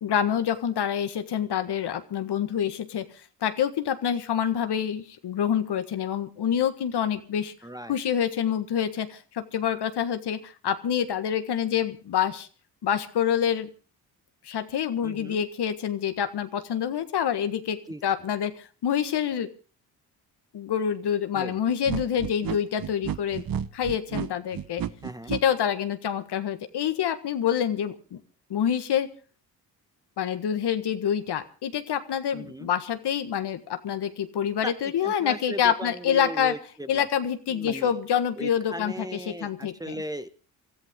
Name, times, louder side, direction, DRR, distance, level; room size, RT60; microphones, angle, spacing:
voice 1, 0.0-3.1 3.4-7.5 7.9-12.5 12.8-13.7 14.4-19.5 20.5-23.4 23.7-24.8 25.3-28.2 28.5-29.1 30.2-36.5 36.9-39.9, left 9 dB, 60° left, 10 dB, 1.6 m, -27 dB
voice 2, 7.6-8.0 15.0-15.4 17.9-18.0 21.3-21.6 25.0-25.3 32.3-32.7 34.6-37.0 37.5-37.9 38.4-40.3, right 1 dB, 10° right, 10 dB, 1.3 m, -37 dB
sound 1, 21.9-25.4, right 9 dB, 50° right, 1.0 m, -31 dB
24.0 x 14.0 x 3.7 m, 0.38 s
supercardioid pair, 60°, 45 cm